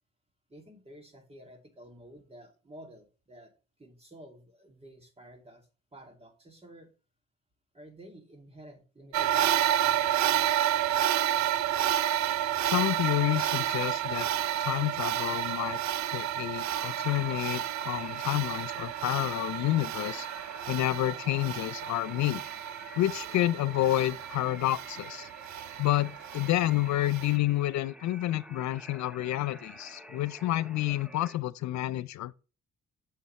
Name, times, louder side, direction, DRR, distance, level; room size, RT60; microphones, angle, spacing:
voice 1, 0.5-3.5 3.8-6.9 7.7-10.6, right 1 dB, 20° right, 2.4 m, -52 dB
sound 1, 9.1-27.4, right 11 dB, 65° right, 0.5 m, -30 dB
voice 2, 12.6-14.3 14.6-15.8 16.1-20.3 20.7-22.4 23.0-25.3 25.8-32.3, left 15 dB, 65° left, 0.5 m, -29 dB
sound 2, 16.6-31.4, equal, 5° right, 1.2 m, -50 dB
8.4 x 6.5 x 3.1 m
cardioid pair, 90°, 30 cm